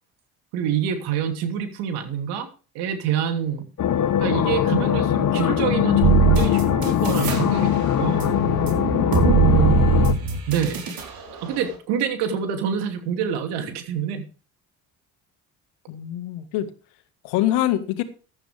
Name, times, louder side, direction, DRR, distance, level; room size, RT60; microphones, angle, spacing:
voice 1, 0.5-2.5 2.7-3.6 4.2-8.3 9.3-9.7 10.1-10.2 10.5-10.8 11.4-14.3, right 8 dB, 80° right, 6 dB, 3.0 m, -26 dB
sound 1, 3.8-10.1, left 10 dB, 50° left, 1.2 m, -21 dB
sound 2, 6.0-7.4 7.8-11.0, right 5 dB, 60° right, 4.1 m, -21 dB
voice 2, 15.9-16.7 17.2-18.0, left 14 dB, 75° left, 10 dB, 1.9 m, -25 dB
15.0 x 12.0 x 3.5 m, 0.35 s
supercardioid pair, 65°, 39 cm